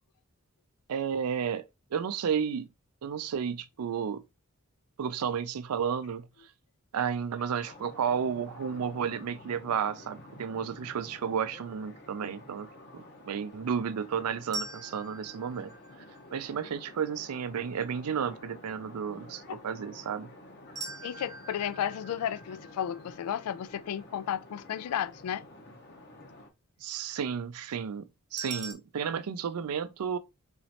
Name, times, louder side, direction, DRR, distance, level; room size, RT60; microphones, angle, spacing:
voice 1, 0.9-1.6 1.9-2.7 3.0-4.2 5.0-6.3 6.9-12.7 12.9-15.7 16.3-20.3 26.8-30.2, right 7 dB, 85° right, 0.4 m, -32 dB
sound 1, 7.6-26.5, left 1 dB, 50° left, 0.8 m, -50 dB
sound 2, 14.5-16.6 20.8-23.9 28.4-28.7, right 3 dB, 15° right, 0.7 m, -43 dB
voice 2, 21.0-25.4, left 9 dB, 85° left, 0.3 m, -33 dB
3.9 x 3.1 x 2.8 m
head